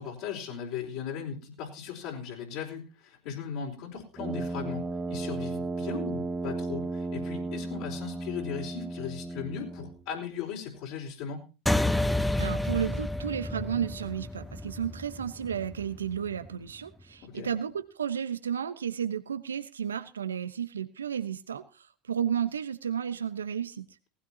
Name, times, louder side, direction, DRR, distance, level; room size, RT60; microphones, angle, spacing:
voice 1, 0.0-11.4 17.2-17.5, left 7 dB, 60° left, -1 dB, 4.4 m, -38 dB
Brass instrument, 4.2-10.0, right 2 dB, 20° right, 1.8 m, -34 dB
sound 1, 11.7-16.5, left 1 dB, 5° left, 1.1 m, -30 dB
voice 2, 12.4-23.8, right 8 dB, 85° right, 10 dB, 1.0 m, -33 dB
19.0 x 15.5 x 2.9 m, 0.33 s
hypercardioid pair, 75°, 0 cm